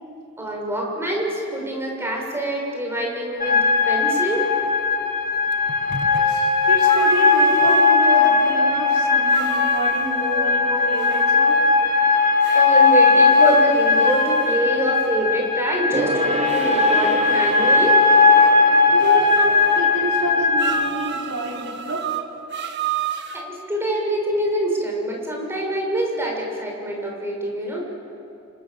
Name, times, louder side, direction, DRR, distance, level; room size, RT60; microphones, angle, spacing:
voice 1, 0.4-4.5 7.5-7.7 10.7-11.1 12.5-18.0 19.4-19.5 23.3-27.8, right 1 dB, 10° right, -1 dB, 6.1 m, -25 dB
sound 1, 3.4-20.9, left 4 dB, 40° left, 2.1 m, -18 dB
sound 2, 5.5-8.5 9.3-11.3 12.4-14.6 16.5-18.6 19.0-19.8 20.6-23.4, right 6 dB, 55° right, 1.4 m, -31 dB
voice 2, 6.2-11.6 18.9-19.4 19.7-22.1, right 1 dB, 75° right, -2 dB, 5.5 m, -28 dB
Gong, 15.9-21.8 22.1-22.2, right 2 dB, 30° right, 1.0 m, -30 dB
29.5 x 26.5 x 7.2 m, 2.8 s
head